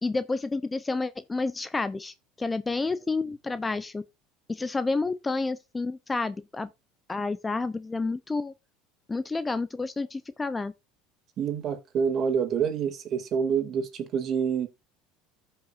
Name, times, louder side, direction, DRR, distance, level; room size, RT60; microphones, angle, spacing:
voice 1, 0.0-4.0 4.5-6.7 7.1-8.5 9.1-10.7, left 3 dB, 15° left, 0.6 m, -30 dB
voice 2, 11.4-14.7, right 7 dB, 45° right, 2.4 m, -27 dB
14.5 x 5.6 x 2.5 m
supercardioid pair, 110°, 0 cm